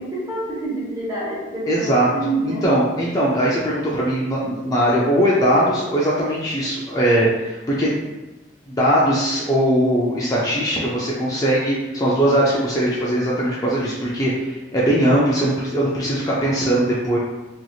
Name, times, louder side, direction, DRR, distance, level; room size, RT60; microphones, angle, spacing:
voice 1, 0.0-2.7, right 2 dB, 20° right, -8 dB, 1.1 m, -27 dB
voice 2, 1.7-2.1 2.4-8.1 8.7-17.2, right 1 dB, 20° left, -6 dB, 0.4 m, -20 dB
3.0 x 2.6 x 2.3 m, 1.0 s
head